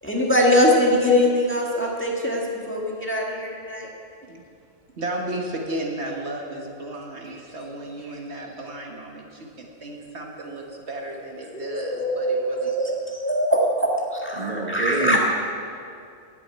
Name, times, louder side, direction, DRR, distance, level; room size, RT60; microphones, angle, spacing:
voice 1, 0.0-3.9 11.5-13.6 14.7-15.2, left 1 dB, 10° left, -3 dB, 1.7 m, -22 dB
voice 2, 5.0-12.7, right 1 dB, 65° right, 0 dB, 1.7 m, -33 dB
voice 3, 14.4-15.2, right 3 dB, 40° right, -3 dB, 1.3 m, -27 dB
10.5 x 8.4 x 8.9 m, 2.4 s
omnidirectional pair, 1.2 m